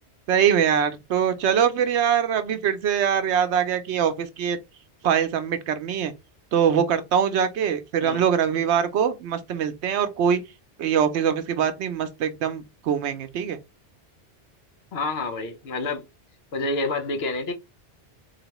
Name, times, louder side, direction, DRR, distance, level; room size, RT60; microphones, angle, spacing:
voice 1, 0.3-4.6 5.0-6.1 6.5-10.4 10.8-13.6, right 8 dB, 80° right, 0.9 m, -23 dB
voice 2, 14.9-16.1 16.5-17.5, left 2 dB, 65° left, 1.0 m, -28 dB
4.0 x 2.9 x 2.9 m
omnidirectional pair, 1.2 m